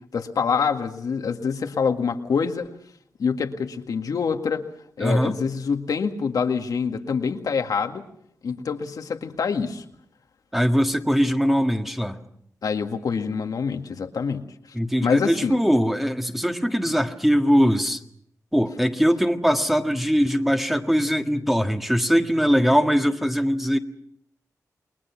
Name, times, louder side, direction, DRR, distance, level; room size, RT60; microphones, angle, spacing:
voice 1, 0.1-2.7 3.2-4.6 5.0-8.0 8.4-9.8 12.6-14.5 15.0-15.6, left 5 dB, 85° left, 6 dB, 2.0 m, -26 dB
voice 2, 5.0-5.4 10.5-12.2 14.7-18.0 18.5-23.8, equal, 5° right, 5 dB, 1.7 m, -21 dB
29.0 x 21.0 x 6.0 m, 0.68 s
wide cardioid pair, 95°, 6 cm